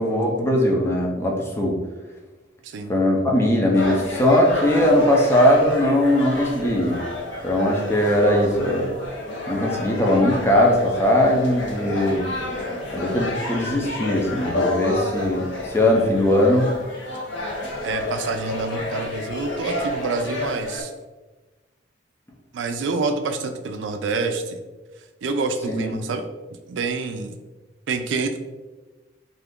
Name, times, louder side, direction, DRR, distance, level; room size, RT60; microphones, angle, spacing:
voice 1, 0.0-1.8 2.9-7.0 7.4-8.9 9.5-12.3 12.9-16.7 25.7-26.0, left 1 dB, 15° left, -1 dB, 0.5 m, -20 dB
voice 2, 2.6-2.9 17.8-20.9 22.5-24.6 25.2-26.2 26.7-27.3 27.9-28.4, right 3 dB, 75° right, 7 dB, 0.4 m, -27 dB
sound 1, 3.7-20.8, left 2 dB, 75° left, 0.6 m, -30 dB
2.6 x 2.4 x 3.5 m, 1.2 s
head